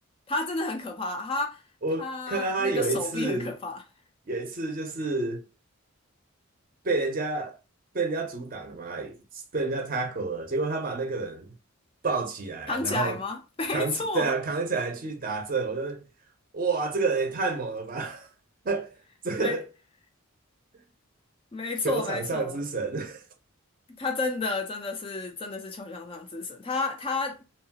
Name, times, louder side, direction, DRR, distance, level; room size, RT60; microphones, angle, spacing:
voice 1, 0.3-1.6 2.0-3.8 12.7-14.3 19.4-19.6 21.5-22.6 24.0-27.4, left 3 dB, 25° left, 0.3 m, -31 dB
voice 2, 1.8-3.5 4.3-5.4 6.8-7.6 7.9-9.2 9.5-11.5 12.0-13.2 13.7-16.0 16.5-18.3 18.6-18.9 19.2-19.7 21.8-23.2, right 3 dB, 40° right, 0.6 m, -29 dB
2.8 x 2.2 x 2.8 m
head